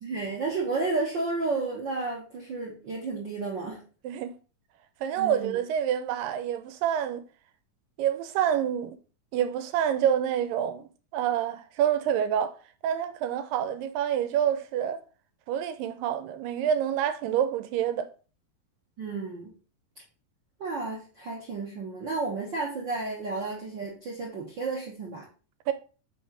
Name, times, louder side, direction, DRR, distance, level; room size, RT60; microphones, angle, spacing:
voice 1, 0.0-3.8 5.2-5.6 19.0-19.5 20.6-25.3, right 3 dB, 65° right, 1.1 m, -32 dB
voice 2, 4.0-4.3 5.0-7.2 8.0-9.0 9.3-12.5 12.8-15.0 15.5-18.1 25.7-25.8, right 9 dB, 85° right, 2.3 m, -27 dB
5.4 x 4.3 x 4.6 m
omnidirectional pair, 3.9 m